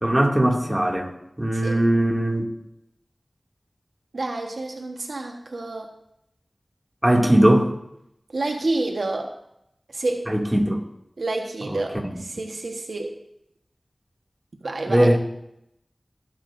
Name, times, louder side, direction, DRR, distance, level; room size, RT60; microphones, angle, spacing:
voice 1, 0.0-1.1 1.4-2.5 7.0-7.7 10.3-10.8 11.7-11.8 14.9-15.2, right 1 dB, 15° right, 0 dB, 2.3 m, -19 dB
voice 2, 4.1-5.9 8.3-9.3 9.9-10.3 11.2-13.2 14.6-15.2, right 2 dB, 90° right, 2 dB, 1.2 m, -29 dB
19.0 x 9.5 x 2.6 m, 0.80 s
wide cardioid pair, 45°, 0 cm